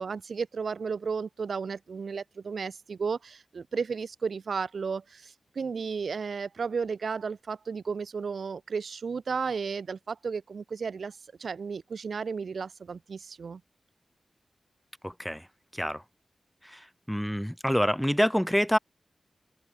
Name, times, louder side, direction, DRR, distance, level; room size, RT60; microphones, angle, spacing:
voice 1, 0.0-13.6, right 5 dB, 70° right, 1.0 m, -33 dB
voice 2, 15.0-15.5 15.7-16.0 16.6-18.8, equal, ahead, 0.6 m, -27 dB
open air
wide cardioid pair, 140°, 0 cm